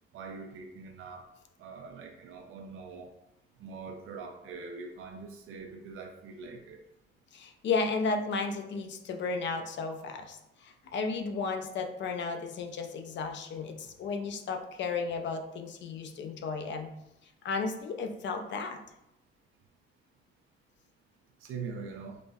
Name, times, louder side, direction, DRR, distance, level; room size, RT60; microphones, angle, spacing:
voice 1, 0.1-1.3 1.6-3.1 3.6-6.8 13.8-13.9 21.4-22.2, right 4 dB, 80° right, 2 dB, 0.4 m, -43 dB
voice 2, 7.3-16.9 17.4-18.8, left 4 dB, 60° left, 5 dB, 0.4 m, -34 dB
5.0 x 2.1 x 2.2 m, 0.87 s
wide cardioid pair, 155°, 21 cm